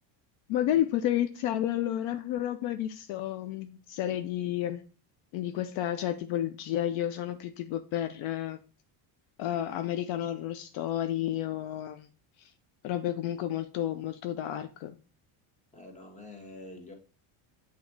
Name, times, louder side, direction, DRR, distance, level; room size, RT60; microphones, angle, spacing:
voice 1, 0.5-4.8 5.3-8.6 9.4-12.1 12.4-12.5 12.8-15.0, left 12 dB, 70° left, 9 dB, 0.7 m, -31 dB
voice 2, 15.7-16.9, left 2 dB, 15° left, 1 dB, 1.7 m, -46 dB
7.2 x 3.1 x 4.5 m, 0.36 s
supercardioid pair, 105°, 50 cm